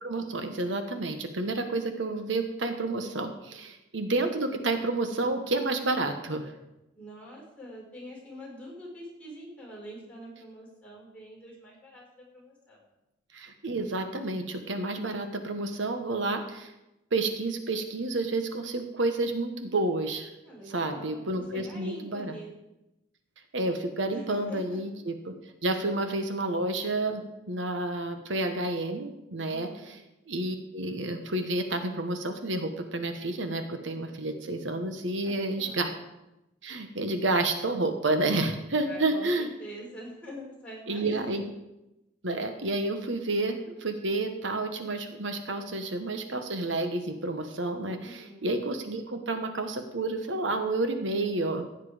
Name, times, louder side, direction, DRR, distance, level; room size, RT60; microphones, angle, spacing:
voice 1, 0.0-6.5 13.3-16.7 17.1-20.3 20.7-22.3 23.5-25.3 25.6-27.2 27.5-29.7 30.3-35.9 36.6-39.5 40.9-41.4 42.2-51.7, right 2 dB, 75° right, 7 dB, 1.2 m, -30 dB
voice 2, 6.9-12.9 20.4-22.6 24.1-24.8 29.5-30.0 35.2-36.0 38.8-41.5 48.0-48.5, equal, 5° left, -4 dB, 4.8 m, -45 dB
15.5 x 9.4 x 5.0 m, 0.92 s
head